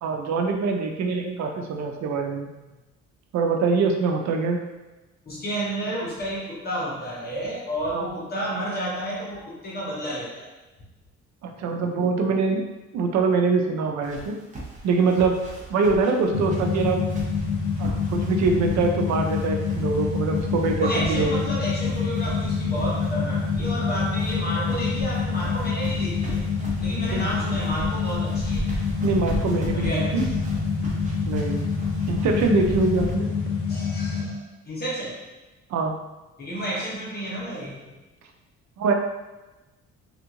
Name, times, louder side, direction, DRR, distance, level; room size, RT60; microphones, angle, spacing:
voice 1, 0.0-2.5 3.3-4.6 7.9-8.0 11.4-12.6 12.9-14.4 14.8-15.4 15.7-17.0 17.8-21.7 27.1-27.5 29.0-30.3 31.2-31.7 32.1-33.3 35.7-36.0 38.8-38.9, right 4 dB, 65° right, 3 dB, 0.5 m, -24 dB
voice 2, 5.3-10.5 20.8-26.4 26.8-28.7 29.7-30.1 33.7-35.2 36.4-37.8, right 1 dB, 35° left, -5 dB, 0.9 m, -31 dB
sound 1, 14.0-33.1, right 2 dB, 25° right, 0.7 m, -38 dB
sound 2, 16.3-34.2, left 5 dB, 70° left, 0.9 m, -26 dB
3.3 x 2.5 x 2.9 m, 1.1 s
cardioid pair, 135°, 29 cm